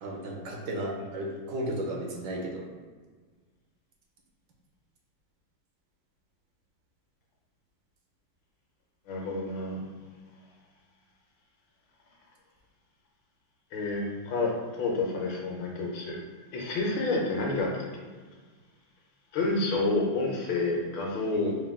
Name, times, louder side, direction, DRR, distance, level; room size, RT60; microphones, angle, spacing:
voice 1, 0.0-2.6 21.3-21.5, right 1 dB, 70° right, -2 dB, 1.3 m, -34 dB
voice 2, 9.1-9.8 13.7-16.2 16.5-17.8 19.3-21.6, left 2 dB, 85° left, -1 dB, 1.5 m, -29 dB
4.3 x 2.2 x 3.5 m, 1.5 s
omnidirectional pair, 2.0 m